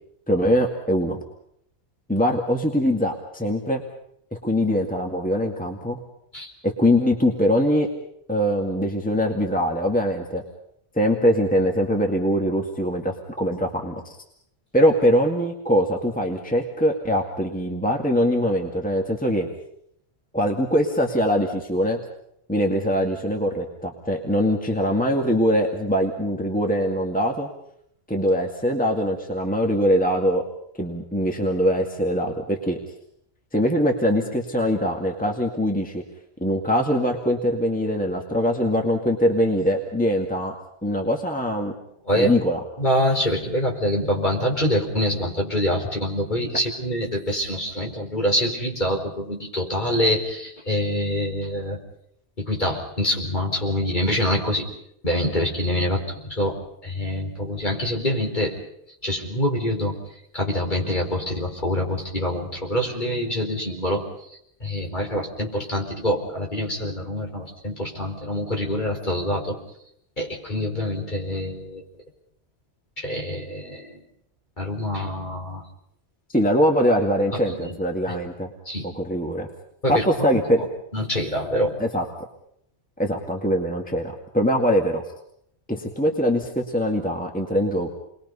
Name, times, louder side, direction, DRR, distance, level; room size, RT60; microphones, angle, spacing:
voice 1, 0.3-1.2 2.1-3.8 4.4-6.0 6.6-7.9 8.3-10.4 11.0-14.2 14.7-19.5 20.3-22.0 22.5-27.5 28.1-30.4 30.8-32.8 33.5-36.0 36.4-40.6 40.8-41.7 42.2-42.6 76.3-78.5 78.9-79.5 79.9-80.6 81.8-82.3 83.0-85.0 85.7-87.9, equal, 5° left, 1 dB, 2.0 m, -22 dB
voice 2, 42.8-51.8 52.4-54.7 55.0-58.6 59.0-69.6 70.2-71.8 73.0-74.0 74.6-75.6 77.5-77.7 78.1-78.2 78.6-78.9 79.8-80.7 80.9-81.8, left 1 dB, 40° left, 0 dB, 4.6 m, -25 dB
29.5 x 22.0 x 5.5 m, 0.72 s
omnidirectional pair, 1.2 m